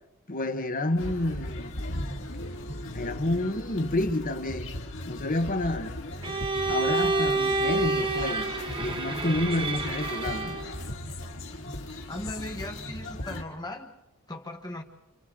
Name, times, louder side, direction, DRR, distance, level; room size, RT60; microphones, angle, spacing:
voice 1, 0.3-1.7 2.9-4.7 5.1-5.9 6.7-10.6, left 2 dB, 40° left, 1.3 m, -29 dB
sound 1, 1.0-13.4, left 1 dB, 60° left, 2.4 m, -37 dB
Bowed string instrument, 6.2-10.8, right 3 dB, 25° right, 1.0 m, -28 dB
voice 2, 12.1-14.0 14.3-14.8, left 1 dB, 20° left, 1.2 m, -38 dB
29.5 x 28.5 x 3.8 m
head